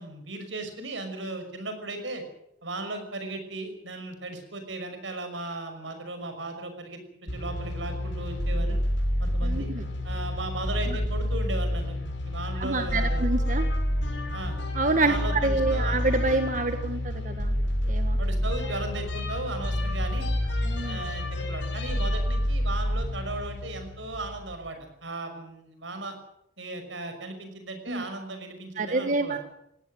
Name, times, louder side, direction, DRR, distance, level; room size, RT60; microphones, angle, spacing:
voice 1, 0.0-2.2 2.6-8.8 9.2-9.7 10.0-12.0 12.3-13.3 14.3-14.6 15.0-16.0 18.2-20.3 20.8-26.1 26.6-29.4, right 2 dB, 90° right, 7 dB, 5.9 m, -36 dB
sound 1, 7.3-24.6, left 1 dB, 85° left, 6.1 m, -28 dB
voice 2, 9.4-9.8 10.9-11.0 12.6-13.7 14.7-17.5 17.8-18.2 20.6-21.0 27.9-28.0 28.8-29.4, right 3 dB, 45° right, 7 dB, 1.7 m, -27 dB
20.0 x 17.0 x 9.2 m, 0.77 s
head